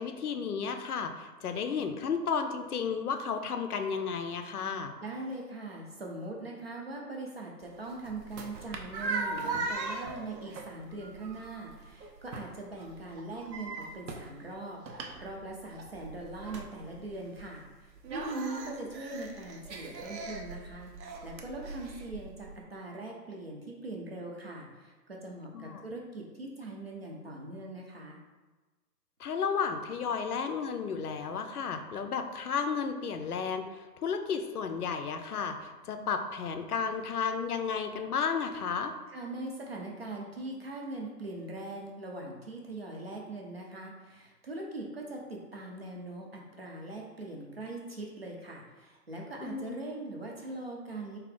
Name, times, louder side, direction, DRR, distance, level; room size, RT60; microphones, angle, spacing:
voice 1, 0.0-5.0 25.5-25.8 29.2-38.9 49.4-49.8, left 6 dB, 65° left, 7 dB, 0.5 m, -33 dB
voice 2, 5.0-20.9 21.2-28.2 39.1-51.2, right 2 dB, 40° right, -1 dB, 0.5 m, -41 dB
sound 1, 7.6-22.6, right 3 dB, 85° right, 0.7 m, -40 dB
3.5 x 2.8 x 3.8 m, 1.2 s
hypercardioid pair, 165°, 49 cm